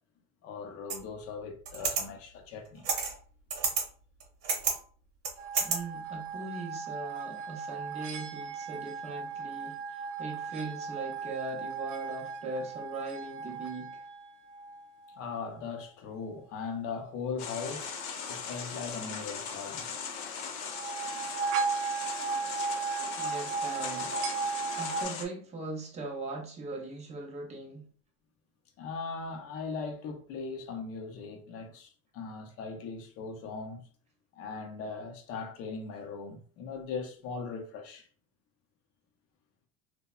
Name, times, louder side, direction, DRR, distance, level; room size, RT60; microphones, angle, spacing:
voice 1, 0.4-2.9 15.2-17.9 18.3-19.9 28.8-33.9 34.3-38.1, left 5 dB, 40° left, 0.5 m, -39 dB
sound 1, 0.9-1.0 1.7-2.0 2.8-3.2 3.5-3.8 4.2-4.8 5.2-5.8, right 5 dB, 55° right, 0.9 m, -29 dB
sound 2, 5.4-15.3 20.6-25.1, right 5 dB, 75° right, 0.5 m, -36 dB
voice 2, 5.6-14.0 23.2-24.1 24.8-27.8, right 2 dB, 20° right, 0.5 m, -40 dB
sound 3, 17.4-25.3, left 6 dB, 85° left, 0.7 m, -39 dB
2.7 x 2.1 x 2.3 m
cardioid pair, 155°, 35 cm